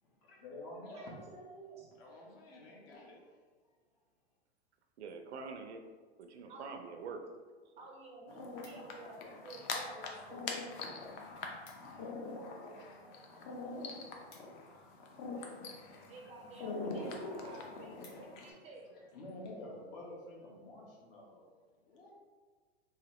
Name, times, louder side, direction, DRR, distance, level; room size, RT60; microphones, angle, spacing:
voice 1, 0.0-1.2 2.0-3.4 10.8-10.9 11.5-12.2 13.2-16.0 17.0-17.7 18.3-18.4 18.9-22.1, left 1 dB, 60° left, -3 dB, 1.3 m, -52 dB
voice 2, 0.9-1.9 6.5-6.8 7.8-10.4 11.9-13.3 16.1-19.0, right 2 dB, 20° right, 0 dB, 0.5 m, -52 dB
voice 3, 5.0-5.8 6.2-7.2 7.7-7.8, right 4 dB, 85° right, 5 dB, 0.6 m, -45 dB
sound 1, 8.2-9.2 9.9-10.4 10.7-10.9 11.1-11.2 11.4-12.1 12.4-15.3 16.0-16.3 16.8-16.9 17.3-17.4 17.6-18.6 19.1-19.3, left 3 dB, 85° left, 1.2 m, -64 dB
sound 2, 8.3-18.5, left 3 dB, 35° left, 0.5 m, -43 dB
3.9 x 2.6 x 3.1 m, 1.5 s
hypercardioid pair, 130°, 32 cm